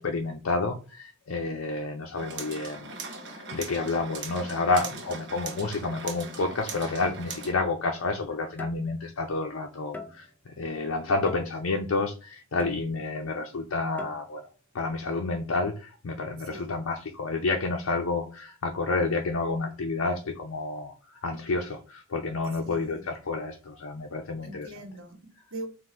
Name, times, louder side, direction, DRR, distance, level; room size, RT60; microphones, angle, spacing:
voice 1, 0.0-3.0 3.3-14.4 14.7-20.9 21.2-24.7, left 3 dB, 80° left, 0.6 m, -30 dB
sound 1, 2.2-7.5, right 4 dB, 60° right, 0.9 m, -40 dB
sound 2, 7.4-7.6 8.6-9.2 9.9-10.5 11.3-11.9 12.6-13.3 14.0-14.5, left 3 dB, 10° left, 0.5 m, -43 dB
voice 2, 16.4-16.8 22.6-23.0 24.4-25.7, right 2 dB, 75° right, 1.2 m, -42 dB
3.8 x 2.6 x 4.3 m
head